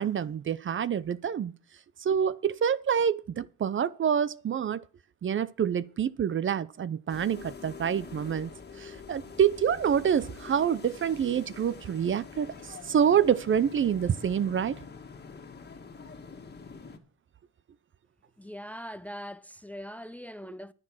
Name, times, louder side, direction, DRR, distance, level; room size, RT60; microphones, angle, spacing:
voice 1, 0.0-1.5 2.0-4.8 5.2-8.5 8.8-14.8, right 8 dB, 40° right, 0.6 m, -27 dB
sound 1, 7.1-17.0, left 5 dB, 35° left, 1.9 m, -45 dB
voice 2, 18.4-20.7, equal, 5° left, 0.5 m, -41 dB
9.9 x 9.8 x 6.2 m
cardioid pair, 90°, 30 cm